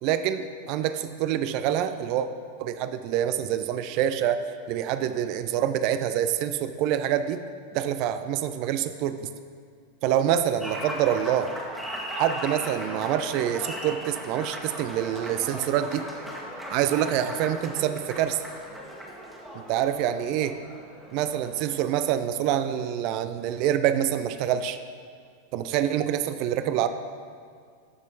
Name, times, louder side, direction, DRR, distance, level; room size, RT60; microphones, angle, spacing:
voice 1, 0.0-2.3 2.6-4.4 4.7-7.4 7.7-9.3 10.0-11.5 12.2-16.1 16.7-18.4 19.5-20.6 21.1-24.8 25.5-26.9, right 10 dB, 45° right, 11 dB, 0.4 m, -26 dB
Applause, 10.6-22.4, equal, 5° right, 1.5 m, -38 dB
14.0 x 6.3 x 4.0 m, 2.1 s
figure-of-eight pair, 90°, 0 cm